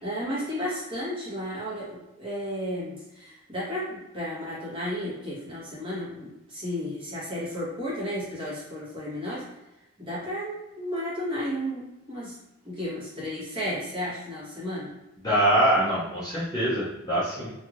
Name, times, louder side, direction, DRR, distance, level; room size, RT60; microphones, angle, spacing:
voice 1, 0.0-9.5 10.0-12.4 12.6-14.9, equal, 25° right, -9 dB, 1.2 m, -33 dB
voice 2, 15.2-17.5, right 1 dB, 15° left, -10 dB, 0.6 m, -24 dB
2.9 x 2.7 x 2.5 m, 0.95 s
head